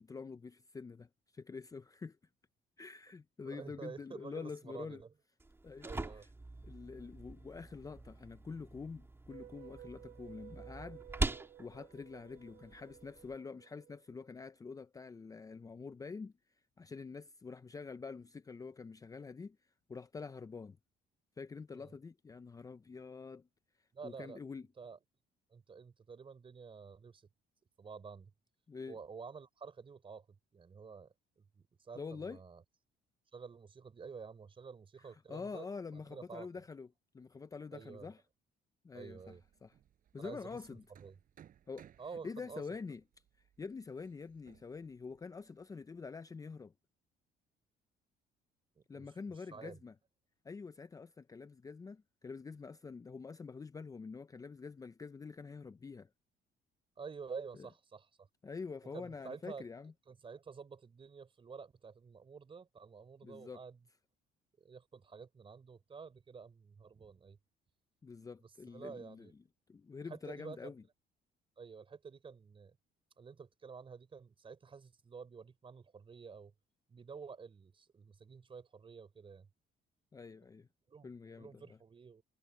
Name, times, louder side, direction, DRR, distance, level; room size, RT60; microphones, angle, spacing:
voice 1, 0.0-2.2 2.8-5.0 5.6-5.9 6.6-16.3 16.8-19.6 19.9-20.8 21.4-23.5 24.0-24.7 28.7-29.0 32.0-32.4 35.0-36.9 37.1-38.2 38.8-39.8 40.1-40.8 41.7-41.9 42.2-43.0 43.6-46.7 48.9-49.9 50.4-56.1 57.6-57.7 58.4-59.9 63.2-63.6 68.0-69.3 69.7-70.8 80.1-80.7 81.0-81.8, left 4 dB, 20° left, 0.6 m, -46 dB
voice 2, 3.5-5.1 5.8-6.3 21.7-21.9 23.9-24.4 24.8-25.0 25.5-27.3 27.8-28.3 28.9-30.3 30.5-31.1 31.5-32.6 33.3-35.7 36.1-36.5 37.7-38.1 38.9-39.4 40.2-41.2 42.0-42.6 48.8-49.1 49.5-49.8 57.0-58.1 58.9-59.7 60.1-63.8 64.6-67.4 68.7-69.3 70.0-70.7 71.6-72.8 73.2-76.5 76.9-79.5 80.9-81.1 81.4-82.2, right 5 dB, 30° right, 4.4 m, -50 dB
sound 1, 5.4-13.4, right 2 dB, 15° right, 2.3 m, -43 dB
sound 2, 9.3-14.5, right 13 dB, 70° right, 1.1 m, -56 dB
Hammer, 39.1-46.0, right 10 dB, 55° right, 5.3 m, -64 dB
cardioid pair, 110°, 17 cm